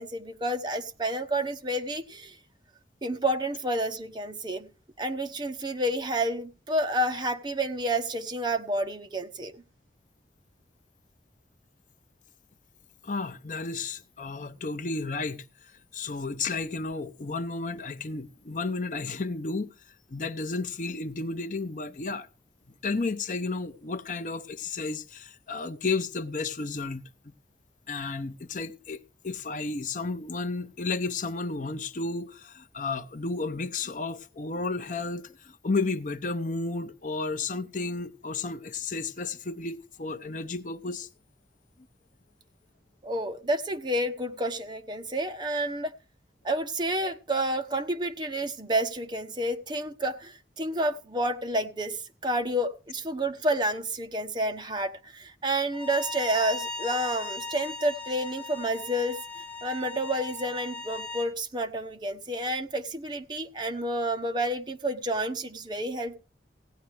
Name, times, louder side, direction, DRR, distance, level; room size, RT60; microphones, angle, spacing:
voice 1, 0.0-2.4 3.0-4.7 5.0-9.6 43.0-45.9 46.4-59.2 59.6-66.2, right 1 dB, 25° right, 1.0 m, -30 dB
voice 2, 13.0-19.7 20.1-22.3 22.8-27.1 27.9-41.1, left 3 dB, 45° left, 0.7 m, -32 dB
Bowed string instrument, 55.7-61.3, left 3 dB, 10° left, 1.5 m, -38 dB
16.5 x 10.0 x 3.2 m
head